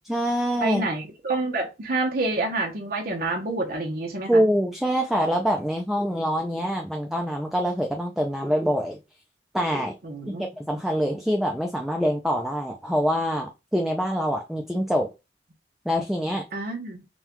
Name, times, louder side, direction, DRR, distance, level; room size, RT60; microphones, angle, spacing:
voice 1, 0.1-0.8 4.3-9.0 9.5-10.0 10.3-15.1 15.9-16.4, equal, ahead, 0.4 m, -25 dB
voice 2, 0.6-4.4 10.0-10.4 16.5-17.0, right 2 dB, 55° right, 0.9 m, -28 dB
5.4 x 2.3 x 3.0 m
head